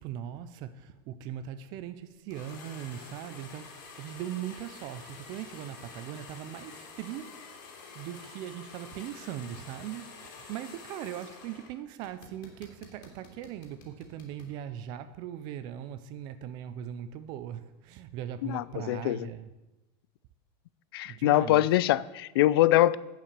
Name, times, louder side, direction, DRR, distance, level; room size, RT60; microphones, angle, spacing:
voice 1, 0.0-7.4 7.9-19.5 21.0-21.7, right 10 dB, 35° right, 0.5 m, -40 dB
sound 1, 2.3-11.7 12.0-14.5, left 4 dB, 60° left, 2.7 m, -48 dB
voice 2, 18.4-19.3 20.9-23.0, left 14 dB, 75° left, 0.4 m, -23 dB
8.7 x 7.4 x 6.7 m
supercardioid pair, 180°, 13 cm